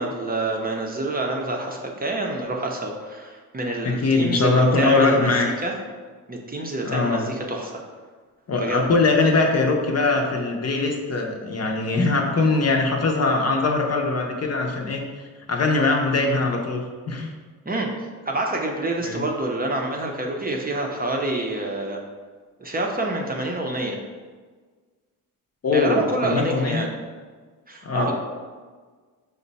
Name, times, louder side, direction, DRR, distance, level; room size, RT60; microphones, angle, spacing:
voice 1, 0.0-5.7 6.3-7.7 8.5-8.8 17.7-17.9 18.3-22.0 22.6-24.0 25.7-26.9 27.7-28.1, right 2 dB, 25° right, 0 dB, 0.6 m, -27 dB
voice 2, 3.8-5.5 6.8-7.3 8.5-15.0 15.5-17.3 19.0-19.2 25.6-26.8 27.8-28.1, left 3 dB, 45° left, 1 dB, 0.7 m, -21 dB
5.1 x 2.2 x 4.0 m, 1.5 s
cardioid pair, 75°, 36 cm